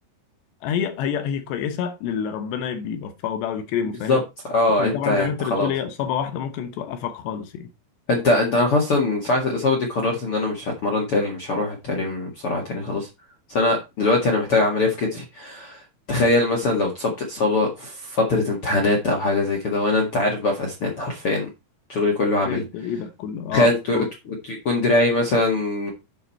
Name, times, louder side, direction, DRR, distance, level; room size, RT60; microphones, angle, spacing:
voice 1, 0.6-4.2 4.8-7.7 22.5-24.1, left 8 dB, 75° left, 2.9 m, -28 dB
voice 2, 4.5-5.7 8.1-13.1 13.5-15.8 16.1-21.5 21.9-22.6 23.5-25.9, left 2 dB, 55° left, 1.5 m, -22 dB
9.4 x 6.3 x 4.3 m
omnidirectional pair, 5.7 m